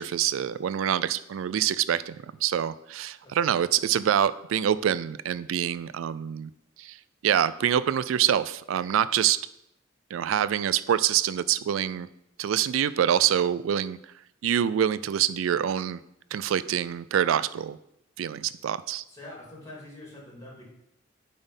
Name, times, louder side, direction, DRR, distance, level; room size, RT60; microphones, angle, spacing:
voice 1, 0.0-6.5 6.8-7.0 7.2-9.4 10.1-12.1 12.4-14.0 14.4-16.0 16.3-17.8 18.2-19.0, right 9 dB, 90° right, 16 dB, 0.3 m, -25 dB
voice 2, 3.2-3.5 19.1-20.7, left 1 dB, 15° left, -3 dB, 2.9 m, -45 dB
8.7 x 4.2 x 5.3 m, 0.80 s
head